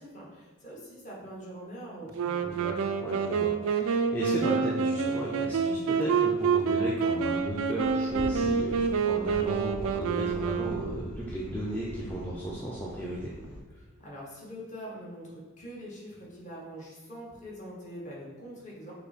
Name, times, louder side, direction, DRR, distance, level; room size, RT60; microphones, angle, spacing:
voice 1, 0.0-2.6 14.0-18.9, equal, 35° left, -4 dB, 1.1 m, -43 dB
Wind instrument woodwind instrument, 2.1-11.2, right 5 dB, 70° right, 0.3 m, -28 dB
voice 2, 2.4-13.3, right 1 dB, 10° left, -7 dB, 0.4 m, -35 dB
sound 1, 2.6-10.7, left 9 dB, 70° left, 1.1 m, -52 dB
sound 2, 7.2-13.6, equal, 90° left, 0.7 m, -44 dB
5.5 x 2.1 x 4.0 m, 1.4 s
head